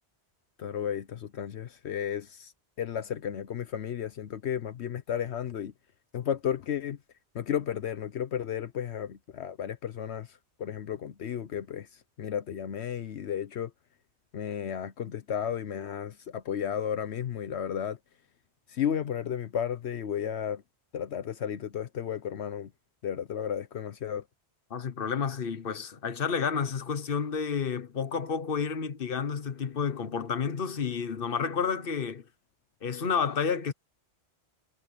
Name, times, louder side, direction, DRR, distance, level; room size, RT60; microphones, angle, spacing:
voice 1, 0.6-2.5 2.8-5.7 6.1-7.0 7.3-13.7 14.3-18.0 18.7-20.6 20.9-22.7 23.0-24.2, left 9 dB, 80° left, 1.1 m, -33 dB
voice 2, 24.7-32.3 32.8-33.7, left 6 dB, 55° left, 1.3 m, -30 dB
omnidirectional pair, 1.1 m